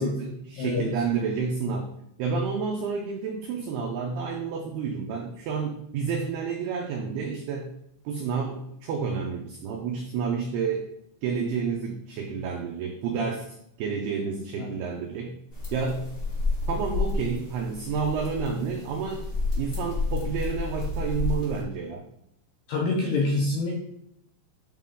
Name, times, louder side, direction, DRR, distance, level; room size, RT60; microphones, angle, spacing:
voice 1, 0.0-1.9 2.2-7.7 8.1-10.8 11.2-13.5 13.8-15.4 15.7-16.1 16.7-19.2 19.6-22.1, right 5 dB, 85° right, 1 dB, 2.2 m, -30 dB
voice 2, 0.5-0.9 14.6-14.7 22.7-23.8, left 3 dB, 75° left, -2 dB, 2.3 m, -26 dB
sound 1, 15.5-21.6, left 3 dB, 40° left, 1.1 m, -30 dB
9.0 x 4.1 x 3.8 m, 0.76 s
omnidirectional pair, 5.6 m